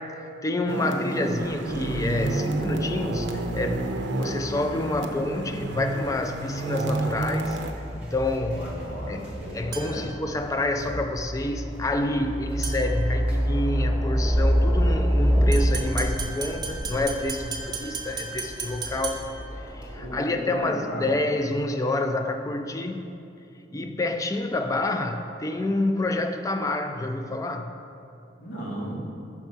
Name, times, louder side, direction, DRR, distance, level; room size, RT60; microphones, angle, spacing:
voice 1, 0.0-3.8 4.2-7.6 8.0-8.6 9.1-9.3 9.5-19.2 19.6-23.0 23.7-27.7, left 2 dB, 20° left, 6 dB, 0.3 m, -28 dB
sound 1, 0.7-7.7, right 2 dB, 75° right, 0.5 m, -30 dB
sound 2, 1.6-20.1, equal, 5° right, 1.4 m, -29 dB
voice 2, 8.4-10.1 20.0-21.1 28.4-29.0, equal, 85° left, -4 dB, 1.4 m, -35 dB
sound 3, 9.7-10.2 12.6-13.0 15.5-19.5, right 5 dB, 25° right, 0.8 m, -35 dB
5.8 x 5.7 x 4.5 m, 2.6 s
head